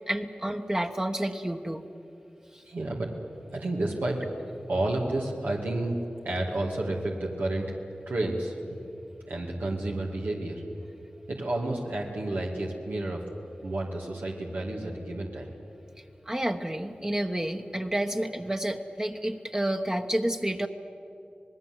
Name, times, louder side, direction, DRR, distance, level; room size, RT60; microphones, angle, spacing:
voice 1, 0.1-1.8 16.3-20.7, right 1 dB, 20° right, 4 dB, 1.1 m, -29 dB
voice 2, 2.6-3.1 3.5-4.2 4.7-6.0 6.2-7.8 8.1-8.8 9.3-10.6 11.3-13.2 13.6-15.5, right 2 dB, 90° right, -2 dB, 2.4 m, -30 dB
26.0 x 19.5 x 7.8 m, 2.7 s
cardioid pair, 50°, 3 cm